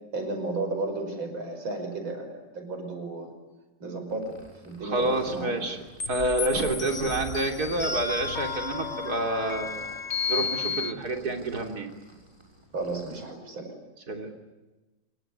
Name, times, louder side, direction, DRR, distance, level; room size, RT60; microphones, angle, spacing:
voice 1, 0.1-3.3 3.8-5.6 12.7-13.7, right 2 dB, 75° right, 6 dB, 6.1 m, -33 dB
sound 1, 4.1-13.2, equal, 15° right, 6.3 m, -52 dB
voice 2, 4.8-5.8 6.1-9.7 10.3-11.9 14.1-14.3, right 2 dB, 50° right, 4 dB, 3.8 m, -28 dB
sound 2, 6.0-10.9, left 5 dB, 40° left, 1.4 m, -32 dB
27.0 x 22.5 x 9.7 m, 1.1 s
omnidirectional pair, 2.2 m